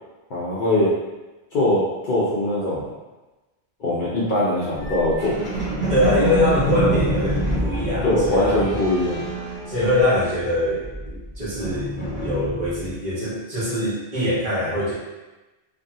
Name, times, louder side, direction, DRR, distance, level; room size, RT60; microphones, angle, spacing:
voice 1, 0.3-0.9 1.5-2.9 3.8-5.4 8.0-9.3, left 1 dB, 55° left, -7 dB, 0.7 m, -21 dB
sound 1, 4.8-10.4 10.7-12.9, right 1 dB, 10° right, 1.1 m, -27 dB
voice 2, 5.9-8.7 9.7-14.9, left 1 dB, 45° right, -10 dB, 1.1 m, -23 dB
2.7 x 2.6 x 2.6 m, 1.1 s
omnidirectional pair, 1.2 m